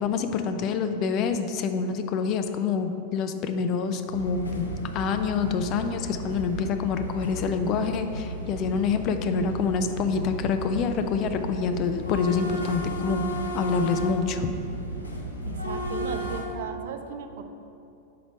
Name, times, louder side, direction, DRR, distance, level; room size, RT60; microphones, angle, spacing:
voice 1, 0.0-13.2 13.5-14.5, left 5 dB, 35° left, 8 dB, 0.4 m, -27 dB
Train riding (inside), 4.1-16.4, right 1 dB, 80° left, 0.7 m, -34 dB
voice 2, 15.4-17.4, right 6 dB, 55° right, 7 dB, 0.5 m, -36 dB
5.0 x 4.7 x 5.3 m, 2.7 s
figure-of-eight pair, 90°, 0 cm